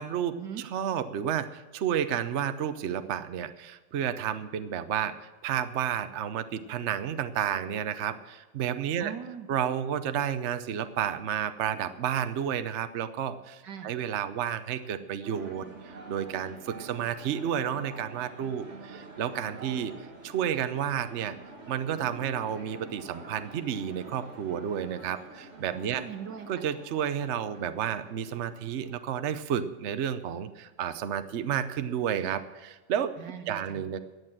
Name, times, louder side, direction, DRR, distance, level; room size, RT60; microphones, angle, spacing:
voice 1, 0.0-0.4 0.7-5.1 5.4-9.1 9.5-19.9 20.2-21.4 21.7-26.0 26.5-33.1 33.5-34.0, right 9 dB, 55° right, 10 dB, 0.8 m, -31 dB
voice 2, 9.0-9.5 13.6-13.9 25.8-26.6 33.2-33.9, right 8 dB, 75° right, 7 dB, 1.9 m, -41 dB
sound 1, 15.2-29.1, right 2 dB, 40° right, 2.3 m, -47 dB
14.5 x 9.3 x 7.5 m, 1.2 s
omnidirectional pair, 1.9 m